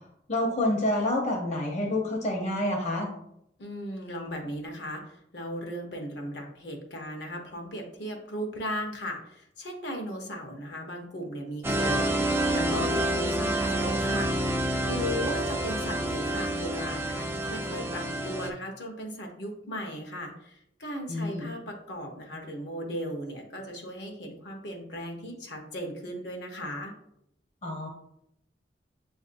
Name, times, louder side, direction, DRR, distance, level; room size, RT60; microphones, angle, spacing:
voice 1, 0.3-3.1 21.1-21.5 27.6-27.9, left 1 dB, 40° left, -1 dB, 0.7 m, -28 dB
voice 2, 3.6-26.9, equal, 70° left, 2 dB, 0.9 m, -37 dB
sound 1, 11.6-18.5, right 1 dB, 15° right, 0.4 m, -28 dB
7.3 x 2.6 x 2.5 m, 0.78 s
head